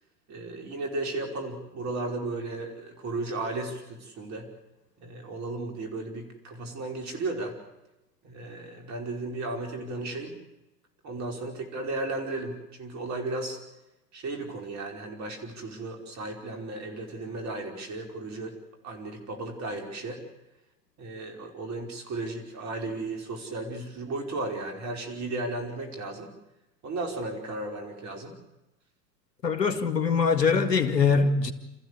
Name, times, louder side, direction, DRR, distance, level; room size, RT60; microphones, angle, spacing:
voice 1, 0.3-4.5 5.0-7.6 8.2-10.4 11.0-13.6 14.1-18.6 18.8-20.2 21.0-26.3 26.8-28.4, right 2 dB, 35° right, 5.2 m, -35 dB
voice 2, 29.4-31.5, left 5 dB, 85° left, 2.2 m, -23 dB
28.0 x 15.0 x 8.4 m
hypercardioid pair, 100°, 49 cm